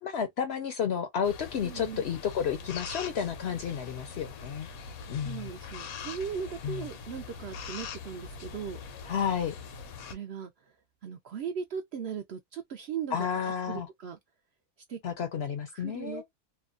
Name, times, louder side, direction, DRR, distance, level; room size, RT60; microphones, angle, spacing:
voice 1, 0.0-4.7 5.1-5.5 6.6-6.8 9.1-9.5 13.1-13.9 15.0-16.2, left 7 dB, 65° left, 0.7 m, -31 dB
sound 1, 1.2-10.2, left 5 dB, 85° left, 1.1 m, -42 dB
voice 2, 1.6-2.0 5.2-8.8 10.1-10.5 11.0-13.3 13.7-14.2 14.9-15.0 15.7-16.3, right 7 dB, 65° right, 0.7 m, -38 dB
2.8 x 2.2 x 2.3 m
omnidirectional pair, 1.5 m